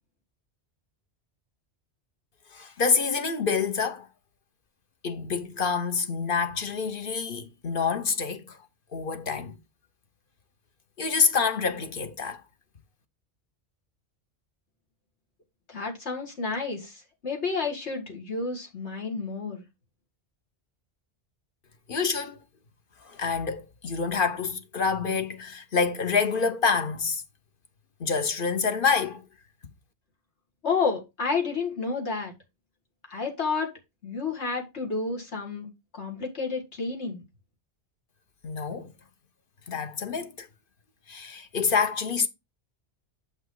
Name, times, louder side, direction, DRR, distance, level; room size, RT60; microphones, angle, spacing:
voice 1, 2.5-4.1 5.0-8.6 8.9-9.6 11.0-12.4 21.9-22.4 23.1-27.2 28.0-29.2 38.4-38.9 39.7-40.5 41.1-42.3, left 5 dB, 55° left, 1.1 m, -27 dB
voice 2, 15.7-19.6 30.6-32.3 33.1-33.7 34.0-35.7 35.9-37.2, left 4 dB, 80° left, 2.4 m, -30 dB
7.8 x 5.6 x 3.8 m
omnidirectional pair, 1.1 m